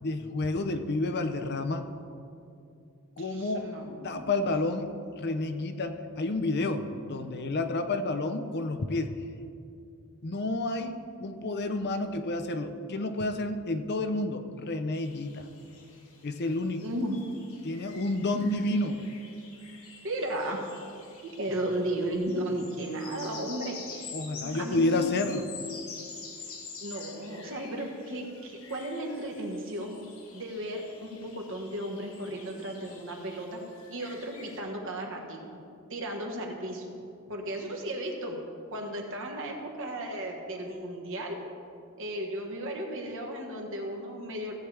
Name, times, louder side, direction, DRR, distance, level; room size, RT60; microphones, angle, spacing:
voice 1, 0.0-1.9 3.2-3.7 4.0-4.9 5.2-9.1 10.2-15.5 16.2-16.9 17.6-19.0 24.1-25.5, left 2 dB, 50° left, 7 dB, 0.6 m, -30 dB
voice 2, 3.2-4.5 16.8-17.5 18.3-18.5 20.0-20.6 21.2-24.1 24.4-25.1 26.8-30.0 30.3-33.6 33.9-35.4 35.9-36.8 37.3-38.4 38.7-41.4 42.0-44.5, right 1 dB, 65° right, 1 dB, 1.5 m, -35 dB
sound 1, 14.9-34.6, left 5 dB, 70° left, 1.5 m, -48 dB
15.5 x 8.5 x 3.4 m, 2.5 s
head